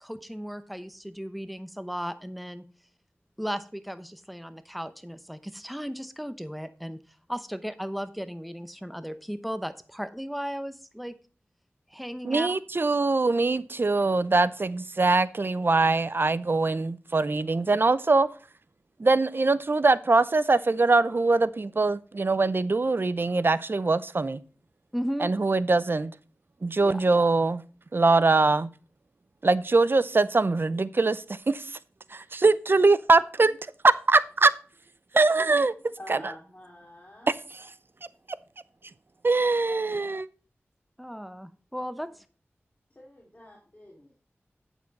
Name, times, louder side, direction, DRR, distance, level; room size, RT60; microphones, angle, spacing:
voice 1, 0.0-2.6 3.4-7.0 7.3-11.1 11.9-12.5 24.9-25.3 26.8-27.0 41.0-42.2, equal, ahead, 0.8 m, -35 dB
voice 2, 12.2-18.3 19.0-24.4 25.2-26.1 26.6-27.6 27.9-28.7 29.4-31.8 32.1-33.6 34.1-34.5 35.1-35.7 36.1-36.2 37.3-37.4 39.2-40.3, right 3 dB, 50° right, 0.6 m, -23 dB
voice 3, 36.0-37.3 42.9-44.2, left 1 dB, 30° left, 2.6 m, -47 dB
8.4 x 7.1 x 4.0 m
wide cardioid pair, 55°, 5 cm